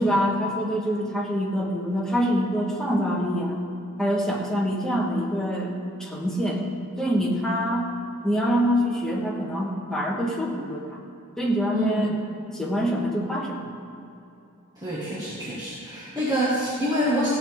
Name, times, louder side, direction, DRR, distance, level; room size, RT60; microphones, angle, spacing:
voice 1, 0.0-3.6 4.0-5.7 6.0-6.6 7.0-7.9 8.2-11.0 11.4-12.1 12.5-13.8 16.2-16.3, equal, 5° left, -3 dB, 1.4 m, -25 dB
voice 2, 11.7-12.0 14.8-17.3, equal, 20° right, -9 dB, 1.8 m, -26 dB
16.0 x 8.4 x 3.6 m, 2.7 s
head